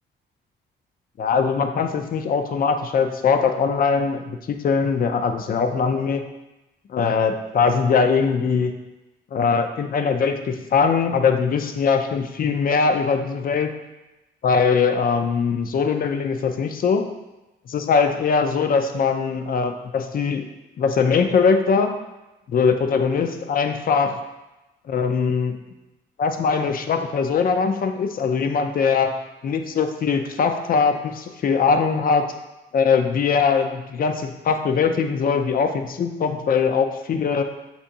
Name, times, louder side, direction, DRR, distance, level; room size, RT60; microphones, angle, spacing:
voice 1, 1.2-6.2 6.9-8.7 9.3-13.7 14.4-17.1 17.7-20.5 20.8-22.0 22.5-24.2 24.9-25.6 26.2-32.2 32.7-37.4, left 5 dB, 45° left, 7 dB, 0.5 m, -21 dB
6.8 x 2.8 x 2.6 m, 1.0 s
cardioid pair, 90°, 20 cm